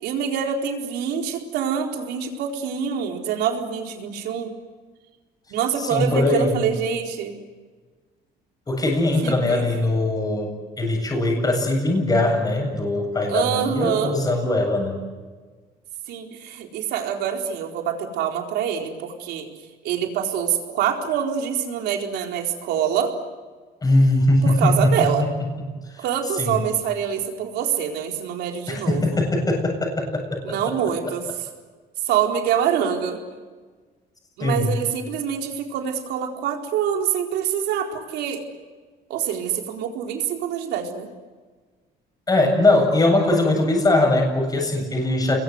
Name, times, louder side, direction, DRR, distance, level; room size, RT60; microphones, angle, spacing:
voice 1, 0.0-4.5 5.5-7.4 9.2-9.7 13.3-14.2 16.1-19.5 19.8-23.1 24.4-25.3 26.0-29.0 30.4-31.3 32.1-33.2 34.4-38.4 39.1-41.1, right 8 dB, 85° right, 2 dB, 4.3 m, -25 dB
voice 2, 5.8-6.6 8.7-15.0 23.8-24.9 25.2-25.3 25.9-26.1 26.3-26.6 28.7-30.6 34.4-34.8 42.3-45.4, left 2 dB, 20° left, 2 dB, 7.9 m, -21 dB
29.5 x 22.0 x 8.0 m, 1.4 s
cardioid pair, 110°, 17 cm